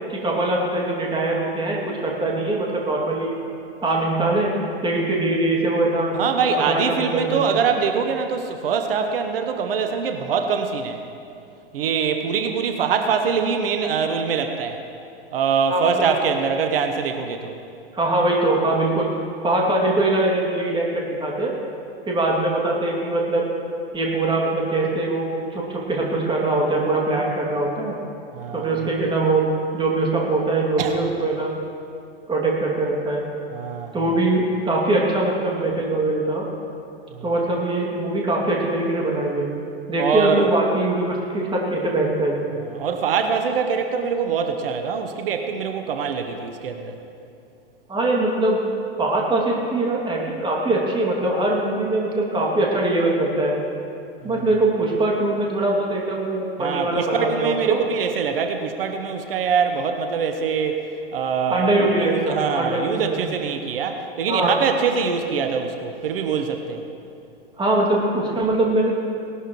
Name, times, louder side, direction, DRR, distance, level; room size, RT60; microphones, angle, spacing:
voice 1, 0.1-3.3 3.8-4.5 4.8-6.2 6.7-7.4 15.7-16.1 17.9-19.1 19.4-21.5 22.1-23.5 23.9-28.0 28.5-29.4 29.7-31.5 32.3-33.2 33.9-36.5 37.2-39.5 39.9-42.5 47.9-48.6 49.0-53.5 54.2-57.8 61.5-63.2 64.3-64.5 67.6-69.1, right 2 dB, 15° right, -2 dB, 2.6 m, -22 dB
voice 2, 6.1-11.0 11.7-14.8 15.3-17.6 28.3-28.9 30.8-31.0 33.5-34.1 37.1-37.2 40.0-40.5 42.7-47.0 54.2-54.5 56.6-60.9 61.1-66.8, right 6 dB, 70° right, 6 dB, 1.1 m, -24 dB
18.5 x 12.5 x 3.2 m, 2.5 s
hypercardioid pair, 95°, 30 cm